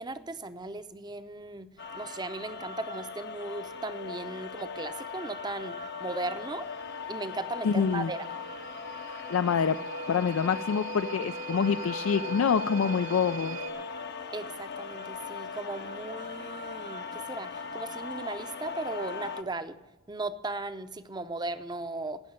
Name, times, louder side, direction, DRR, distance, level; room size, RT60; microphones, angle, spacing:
voice 1, 0.0-6.7 7.1-8.3 13.8-13.9 14.3-19.8 20.1-22.2, right 2 dB, 20° right, 12 dB, 0.6 m, -37 dB
sound 1, 1.8-19.4, left 5 dB, 55° left, 0.8 m, -39 dB
sound 2, 6.2-13.7, right 4 dB, 85° right, 1.8 m, -43 dB
voice 2, 7.6-8.1 9.1-9.8 10.1-13.6, left 6 dB, 90° left, 10 dB, 0.4 m, -26 dB
15.5 x 6.5 x 8.7 m, 1.1 s
head